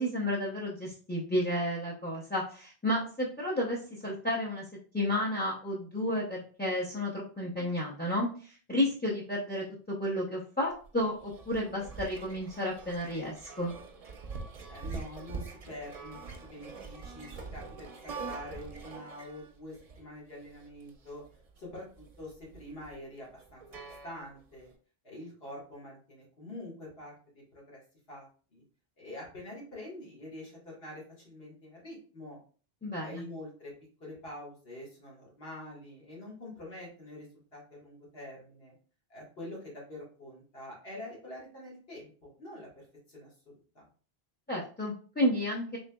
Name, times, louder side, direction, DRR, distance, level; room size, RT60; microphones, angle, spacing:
voice 1, 0.0-4.6 4.9-13.7 32.8-33.2 44.5-45.8, left 1 dB, 15° left, -3 dB, 0.5 m, -32 dB
sound 1, 10.7-24.6, right 4 dB, 45° right, 0.5 m, -44 dB
voice 2, 14.7-21.2 21.6-23.6 24.0-24.7 25.0-27.8 28.1-28.6 29.0-32.4 33.0-33.7 34.0-38.8 39.1-43.9, left 1 dB, 75° left, -4 dB, 1.8 m, -46 dB
3.9 x 3.5 x 2.2 m, 0.41 s
omnidirectional pair, 1.0 m